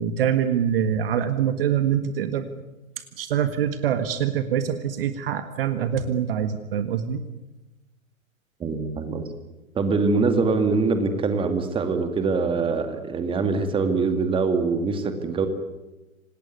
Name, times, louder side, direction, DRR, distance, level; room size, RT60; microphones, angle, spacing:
voice 1, 0.0-2.5 3.2-7.2, right 9 dB, 40° right, 10 dB, 1.7 m, -24 dB
voice 2, 8.6-9.2 9.7-15.5, right 4 dB, 10° right, 8 dB, 2.4 m, -23 dB
27.0 x 19.0 x 9.6 m, 1.1 s
figure-of-eight pair, 115°, 42 cm